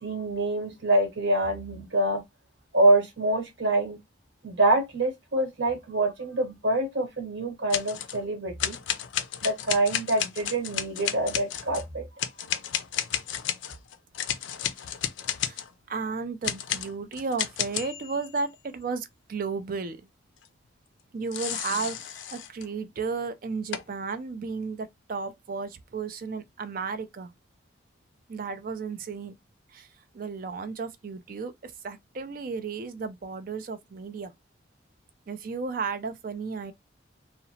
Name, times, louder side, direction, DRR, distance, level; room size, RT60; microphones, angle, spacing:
voice 1, 0.0-2.2 2.7-4.0 4.4-8.8 9.4-12.0, right 1 dB, 75° right, 1.1 m, -25 dB
sound 1, 7.7-8.2 8.6-11.9 12.2-15.7 16.4-18.4 21.3-22.7 23.7-23.8, left 10 dB, 75° left, 0.4 m, -32 dB
voice 2, 15.4-20.1 21.1-27.3 28.3-29.3 29.7-29.9 30.1-34.3 35.3-36.7, right 4 dB, 45° right, 0.4 m, -34 dB
2.8 x 2.0 x 2.7 m
head